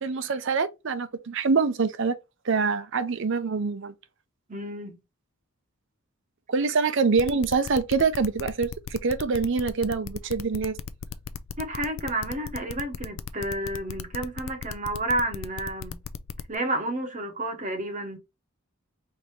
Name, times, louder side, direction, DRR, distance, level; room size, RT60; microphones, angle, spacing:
voice 1, 0.0-2.2 2.5-3.9 6.5-10.8, right 4 dB, 55° right, 0.5 m, -25 dB
voice 2, 4.5-5.0 11.6-16.0 16.5-18.2, right 1 dB, 35° right, 0.8 m, -30 dB
sound 1, 7.2-16.6, left 7 dB, 60° left, 0.4 m, -36 dB
4.5 x 2.7 x 3.2 m
head